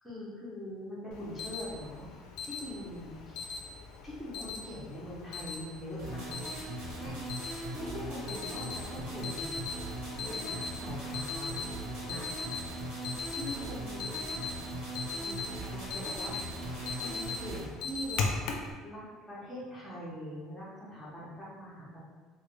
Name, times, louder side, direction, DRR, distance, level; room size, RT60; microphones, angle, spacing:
voice 1, 0.0-2.1 2.4-3.6 4.0-6.3 7.0-9.6 10.3-11.7 12.0-12.3 12.6-12.9 13.3-14.2 15.1-16.6 16.9-18.3 18.8-22.1, left 1 dB, ahead, -9 dB, 0.9 m, -43 dB
Alarm, 1.1-18.7, left 4 dB, 60° left, 0.4 m, -40 dB
sound 1, 6.0-17.6, right 1 dB, 80° right, 1.1 m, -39 dB
3.1 x 2.2 x 3.2 m, 1.5 s
cardioid pair, 160°, 0 cm